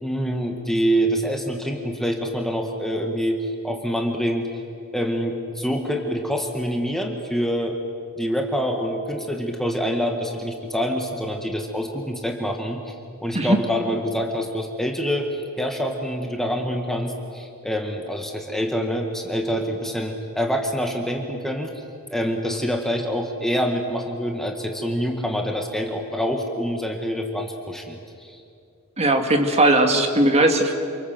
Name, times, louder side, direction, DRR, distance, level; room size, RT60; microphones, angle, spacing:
voice 1, 0.0-4.5 4.9-7.7 8.2-21.7 22.1-28.4, equal, ahead, 2 dB, 1.7 m, -26 dB
voice 2, 29.0-30.7, right 1 dB, 30° right, 4 dB, 2.1 m, -18 dB
28.0 x 25.0 x 7.8 m, 2.5 s
head